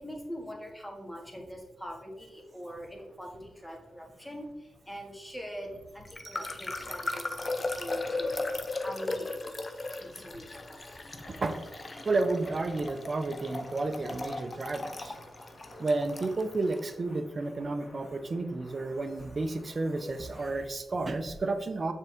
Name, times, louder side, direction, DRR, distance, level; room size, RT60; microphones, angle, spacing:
voice 1, 0.0-8.5 8.8-9.4 9.7-11.4, equal, 10° left, 1 dB, 1.9 m, -43 dB
sound 1, 2.3-20.7, left 1 dB, 65° left, 2.3 m, -54 dB
sound 2, 6.0-16.9, left 2 dB, 40° left, 0.7 m, -37 dB
voice 2, 12.0-15.2 15.8-21.9, right 3 dB, 45° right, 8 dB, 0.6 m, -31 dB
6.6 x 4.6 x 3.6 m, 1.0 s
supercardioid pair, 45°, 0 cm